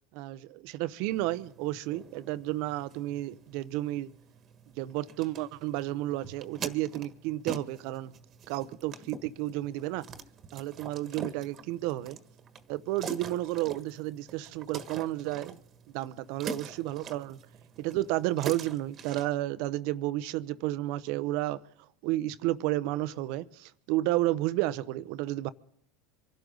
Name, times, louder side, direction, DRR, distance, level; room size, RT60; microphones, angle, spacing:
voice 1, 0.1-4.1 4.8-8.1 8.5-10.1 10.5-12.2 12.7-15.6 15.9-17.4 17.8-21.6 22.0-25.5, right 16 dB, 65° right, 0.8 m, -32 dB
sound 1, 1.1-19.3, right 5 dB, 40° right, 1.5 m, -45 dB
25.0 x 12.0 x 3.9 m
hypercardioid pair, 85°, 0 cm